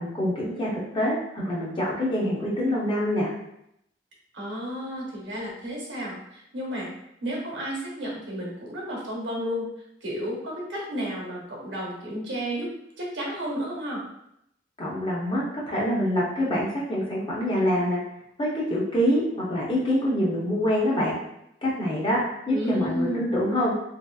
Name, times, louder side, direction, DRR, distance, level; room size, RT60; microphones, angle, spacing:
voice 1, 0.0-3.3 14.8-18.0 18.4-21.2 21.6-22.2 22.5-23.7, equal, 25° left, -5 dB, 0.7 m, -25 dB
voice 2, 4.3-6.9 7.2-9.7 10.0-12.7 13.0-14.0 22.5-23.2, equal, 70° right, -3 dB, 0.9 m, -32 dB
2.9 x 2.7 x 2.3 m, 0.78 s
head